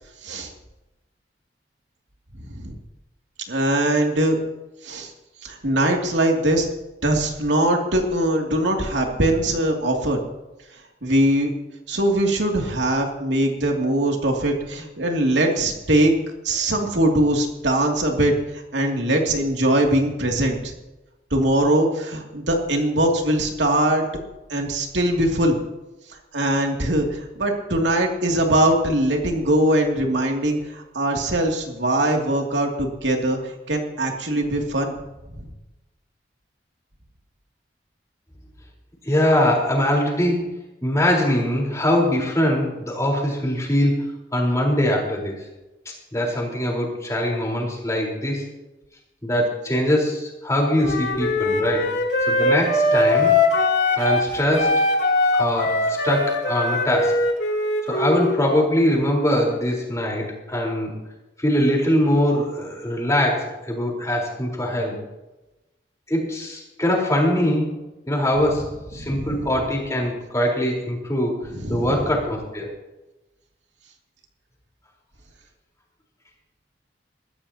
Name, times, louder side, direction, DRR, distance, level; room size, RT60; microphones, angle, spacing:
voice 1, 3.5-4.4 4.8-5.1 5.4-6.7 7.0-10.2 11.0-11.5 11.9-16.1 16.4-18.3 18.7-20.7 21.3-24.1 24.5-25.6 26.3-35.0 68.9-69.4 71.5-72.0, right 1 dB, 85° right, 1 dB, 2.6 m, -21 dB
voice 2, 39.0-40.5 40.8-43.9 44.3-45.4 45.9-48.4 49.2-53.3 54.0-54.9 55.3-57.2 57.8-60.9 61.4-65.0 66.1-67.7 68.1-71.4 71.7-72.7, left 1 dB, 20° left, -1 dB, 4.2 m, -22 dB
Wind instrument woodwind instrument, 50.8-54.3 54.5-58.4, left 2 dB, 75° left, 3.0 m, -21 dB
22.0 x 14.5 x 2.9 m, 1.0 s
head